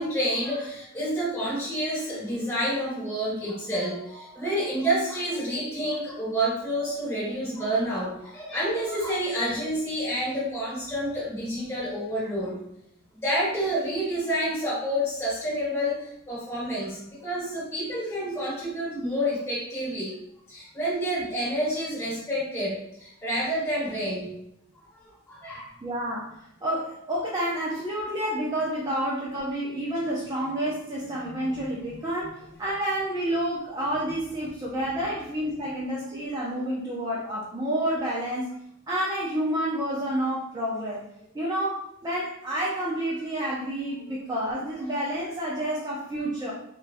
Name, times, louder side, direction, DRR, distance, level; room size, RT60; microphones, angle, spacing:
voice 1, 0.0-12.6 13.1-20.1 20.5-24.3 24.9-25.0 25.3-25.7 31.2-31.3 35.0-35.1, equal, 15° left, -9 dB, 1.2 m, -29 dB
voice 2, 25.8-38.6 38.9-41.0 41.3-46.5, right 1 dB, 20° right, -6 dB, 0.5 m, -29 dB
3.4 x 2.3 x 2.5 m, 0.77 s
head